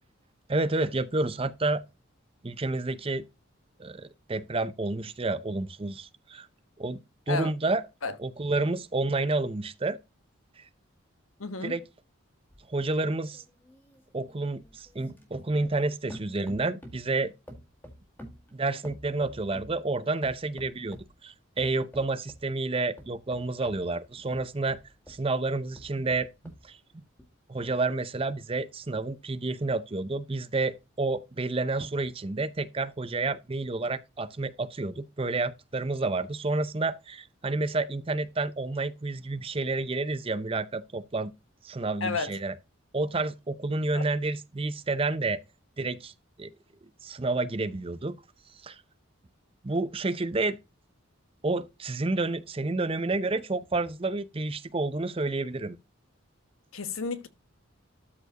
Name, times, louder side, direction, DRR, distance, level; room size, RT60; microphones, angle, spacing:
voice 1, 0.5-1.8 2.4-3.3 3.8-6.5 6.8-7.0 7.3-7.8 8.2-10.0 11.6-11.8 12.7-13.4 14.1-17.3 18.5-24.8 25.1-26.3 26.6-26.8 27.5-41.3 41.6-42.5 42.9-45.4 45.8-46.1 46.4-46.5 47.0-48.2 48.6-48.8 49.6-50.6 51.4-55.8, right 3 dB, 25° right, 0.6 m, -29 dB
voice 2, 11.4-11.7 42.0-42.3 43.9-44.0 56.7-57.3, left 4 dB, 85° left, 1.2 m, -31 dB
sound 1, 12.5-15.8 16.1-17.1 17.5-19.8 20.2-21.2 21.6-22.5 23.0-25.3 25.7-26.7 27.2-27.3, equal, 10° left, 1.9 m, -48 dB
13.0 x 4.6 x 2.9 m
head